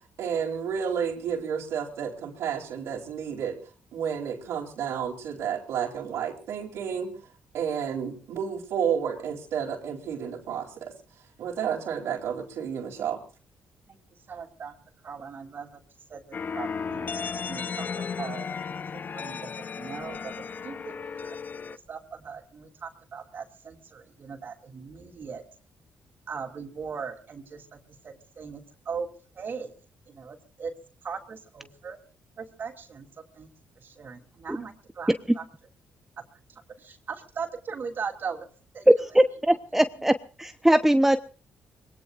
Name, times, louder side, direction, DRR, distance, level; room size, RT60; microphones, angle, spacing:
voice 1, 0.2-3.6 3.9-7.1 7.5-10.9 11.4-13.2, right 7 dB, 80° right, -2 dB, 3.7 m, -31 dB
voice 2, 14.3-14.7 15.0-15.8 16.1-18.8 19.1-21.4 21.7-25.4 26.3-29.1 29.3-29.7 30.1-30.7 31.0-32.0 32.4-33.5 33.8-35.4 36.5-38.5 38.7-39.1, right 5 dB, 50° right, 3 dB, 3.3 m, -39 dB
sound 1, 16.3-21.8, left 6 dB, 40° left, 0.7 m, -34 dB
voice 3, 39.1-41.2, right 1 dB, 5° right, 9 dB, 1.0 m, -21 dB
25.5 x 21.5 x 2.6 m, 0.40 s
cardioid pair, 90°, 5 cm